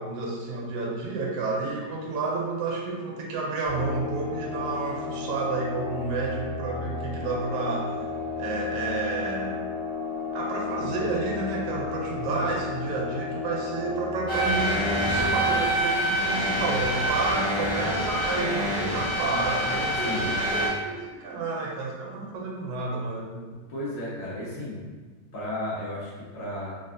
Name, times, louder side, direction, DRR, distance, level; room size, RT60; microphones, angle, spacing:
voice 1, 0.0-8.0 8.4-9.6 10.3-23.5, right 3 dB, 75° right, -2 dB, 1.1 m, -30 dB
sound 1, 3.7-15.5, left 4 dB, 45° left, 1.0 m, -33 dB
sound 2, 14.3-20.7, equal, 30° left, 0.4 m, -26 dB
voice 2, 23.7-24.8 25.3-26.7, left 1 dB, 75° left, -8 dB, 1.5 m, -33 dB
3.4 x 2.4 x 2.5 m, 1.4 s
omnidirectional pair, 1.7 m